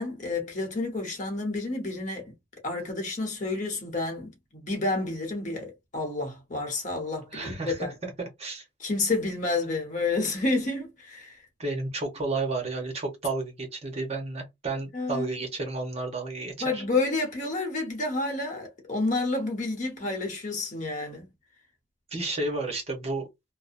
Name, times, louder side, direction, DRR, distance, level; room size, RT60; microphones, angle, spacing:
voice 1, 0.0-2.3 2.6-7.9 8.8-11.4 14.9-15.3 16.6-21.3, left 3 dB, 45° left, 1.0 m, -30 dB
voice 2, 7.3-8.6 11.6-16.8 21.0-21.1 22.1-23.3, right 3 dB, 35° right, 0.8 m, -32 dB
2.7 x 2.0 x 2.5 m
head